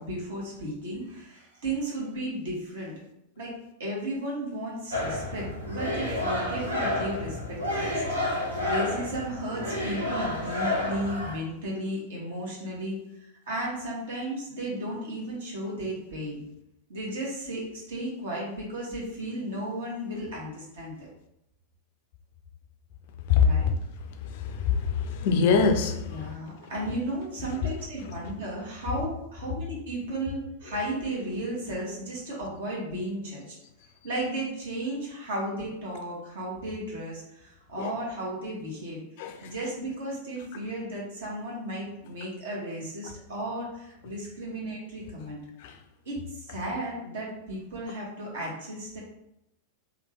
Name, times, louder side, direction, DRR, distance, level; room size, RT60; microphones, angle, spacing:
voice 1, 0.0-2.9 3.4-3.5 3.8-8.0 8.3-13.0 13.5-16.4 16.9-21.1 23.4-23.7 26.1-33.5 34.0-39.0 39.4-45.4 46.0-49.0, right 1 dB, 60° right, 1.2 m, -34 dB
sound 1, 4.9-11.4, left 1 dB, 80° right, 0.8 m, -30 dB
voice 2, 24.2-26.3 37.8-37.9 39.2-39.5 45.6-45.8, left 5 dB, 50° left, 0.4 m, -24 dB
3.1 x 2.3 x 3.5 m
figure-of-eight pair, 90°, 0 cm